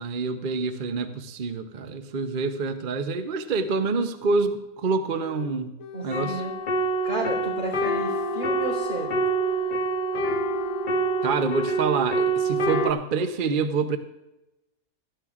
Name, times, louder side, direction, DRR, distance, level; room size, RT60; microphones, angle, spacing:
voice 1, 0.0-5.7 6.0-6.4 11.2-14.0, right 4 dB, 45° right, 8 dB, 0.8 m, -27 dB
sound 1, 5.1-5.5 5.8-7.3 7.6-9.1 9.4-10.9 11.2-12.1, left 4 dB, 90° left, 1.5 m, -41 dB
voice 2, 5.9-6.5 7.0-9.2, right 2 dB, 80° right, -2 dB, 4.6 m, -32 dB
sound 2, 6.1-12.9, right 2 dB, 45° left, 0.7 m, -26 dB
18.0 x 13.0 x 2.5 m, 0.94 s
omnidirectional pair, 1.5 m